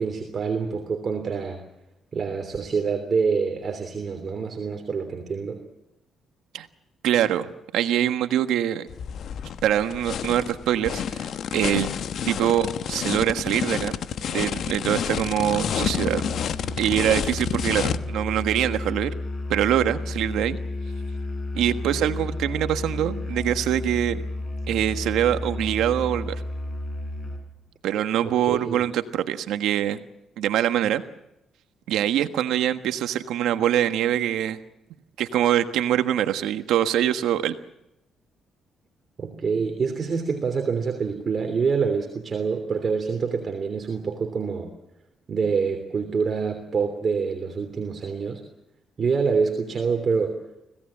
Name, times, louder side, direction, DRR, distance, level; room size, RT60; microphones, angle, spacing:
voice 1, 0.0-1.6 2.1-5.6 28.2-28.8 39.2-44.7 45.3-48.4 49.0-50.4, right 5 dB, 45° right, 5 dB, 3.2 m, -26 dB
voice 2, 7.0-8.9 9.6-11.9 12.3-14.0 14.3-16.3 16.8-19.1 19.5-20.6 21.5-24.2 24.7-26.4 27.8-30.0 30.4-31.0 31.9-34.6 35.2-37.5, right 11 dB, 85° right, 9 dB, 1.4 m, -24 dB
sound 1, 8.9-18.0, left 8 dB, 65° left, 1.1 m, -29 dB
Musical instrument, 15.6-27.5, left 2 dB, 40° left, 6.3 m, -32 dB
26.0 x 17.5 x 8.7 m, 0.90 s
cardioid pair, 90°, 0 cm